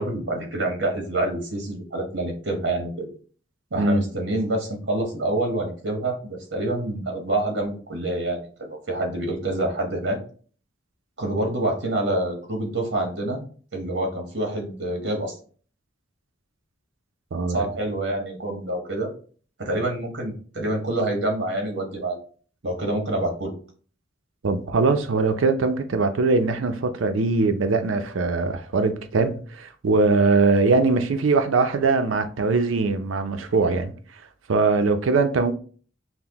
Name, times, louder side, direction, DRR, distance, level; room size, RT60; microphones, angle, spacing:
voice 1, 0.0-3.1 3.7-10.2 11.2-13.4 13.7-15.4 17.5-19.1 19.6-22.2 22.6-23.5, right 1 dB, 60° right, 1.0 m, -27 dB
voice 2, 24.4-33.9 34.5-35.5, right 3 dB, 90° right, 0.5 m, -21 dB
5.7 x 2.1 x 2.9 m
head